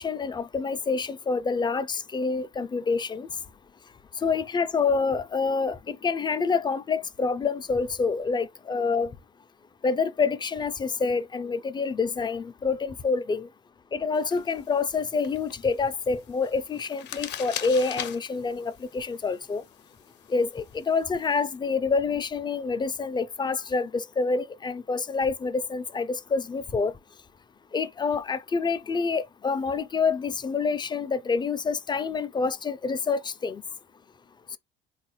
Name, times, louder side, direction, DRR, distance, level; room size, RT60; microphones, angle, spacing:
voice 1, 0.0-3.3 4.2-9.1 9.8-13.5 13.9-19.6 20.3-26.9 27.7-33.6, left 4 dB, 20° left, 0.4 m, -27 dB
sound 1, 14.1-21.6, left 10 dB, 60° left, 0.6 m, -42 dB
3.4 x 2.4 x 3.0 m
supercardioid pair, 80°, 20 cm